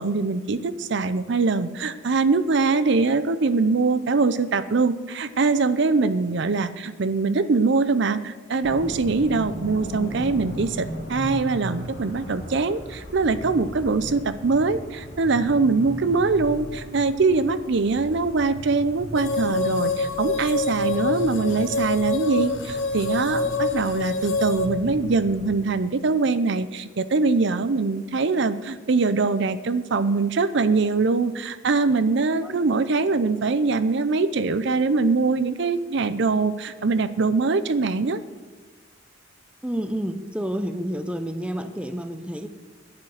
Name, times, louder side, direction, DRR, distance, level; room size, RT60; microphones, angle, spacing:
voice 1, 0.0-38.2, right 4 dB, 60° right, 13 dB, 0.6 m, -23 dB
sound 1, 8.6-25.5, equal, 60° left, 2.8 m, -37 dB
sound 2, 19.1-24.7, left 3 dB, 90° left, 1.5 m, -26 dB
voice 2, 39.6-42.5, equal, 5° right, 9 dB, 0.7 m, -29 dB
10.5 x 9.0 x 7.2 m, 1.4 s
head